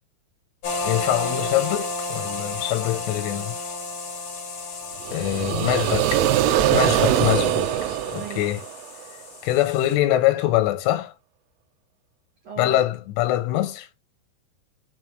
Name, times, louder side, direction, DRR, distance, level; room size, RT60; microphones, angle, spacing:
sound 1, 0.6-9.9, left 3 dB, 55° left, 1.9 m, -33 dB
voice 1, 0.8-3.5 5.1-6.1 6.7-7.7 8.1-8.6 9.4-11.1 12.6-13.9, left 14 dB, 85° left, 3.5 m, -23 dB
sound 2, 5.0-9.0, right 12 dB, 90° right, 3.3 m, -22 dB
voice 2, 5.5-8.4 12.4-12.8, right 5 dB, 55° right, 2.0 m, -42 dB
8.1 x 4.2 x 3.3 m
omnidirectional pair, 5.5 m